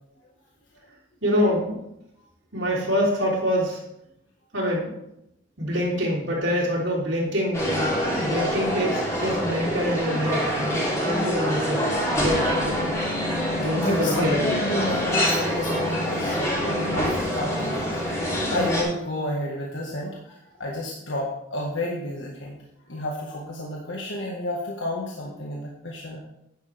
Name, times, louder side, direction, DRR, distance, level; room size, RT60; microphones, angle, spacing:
voice 1, 1.2-1.8 2.5-3.8 4.5-4.9 5.6-13.1 13.6-14.5, equal, 85° right, -7 dB, 3.6 m, -26 dB
sound 1, 7.5-18.8, equal, 15° left, 3.5 m, -25 dB
voice 2, 13.7-18.0 18.5-20.2 20.6-22.6 22.9-26.2, left 1 dB, 80° left, -2 dB, 1.7 m, -31 dB
11.0 x 9.8 x 3.5 m, 0.82 s
head